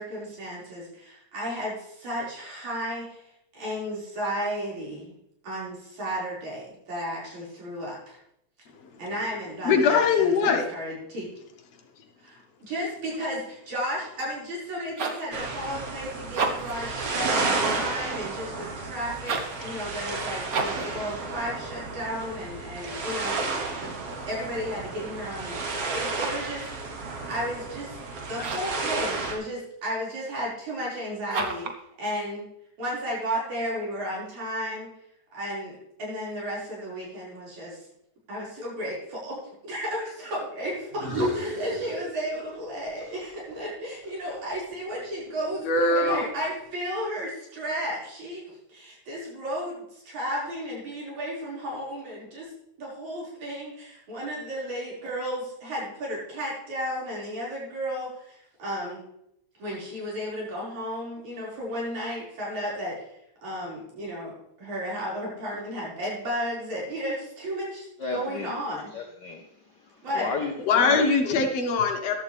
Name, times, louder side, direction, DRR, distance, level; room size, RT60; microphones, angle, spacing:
voice 1, 0.0-5.1 5.4-8.2 9.0-11.3 12.2-23.9 24.3-25.6 25.9-26.7 27.0-28.0 28.3-31.7 32.0-32.5 32.8-34.9 35.3-37.9 38.3-52.5 52.8-59.0 59.6-68.9 70.0-70.3, equal, 70° right, -6 dB, 6.4 m, -33 dB
voice 2, 8.7-9.0 9.6-10.7 45.6-46.2 70.7-72.2, left 4 dB, 65° left, 4 dB, 2.1 m, -22 dB
sound 1, 14.7-15.3 16.2-16.8 19.2-19.6 20.5-20.9 25.9-26.5 28.3-28.8 31.3-31.8, right 4 dB, 90° right, 0.7 m, -31 dB
sound 2, 15.3-29.3, right 3 dB, 55° right, 2.8 m, -32 dB
sound 3, 40.9-42.7 43.0-45.2, equal, 25° right, 1.3 m, -34 dB
voice 3, 68.0-68.6 68.9-71.3, left 4 dB, 85° left, 3 dB, 0.9 m, -33 dB
14.5 x 11.5 x 3.4 m, 0.76 s
omnidirectional pair, 3.4 m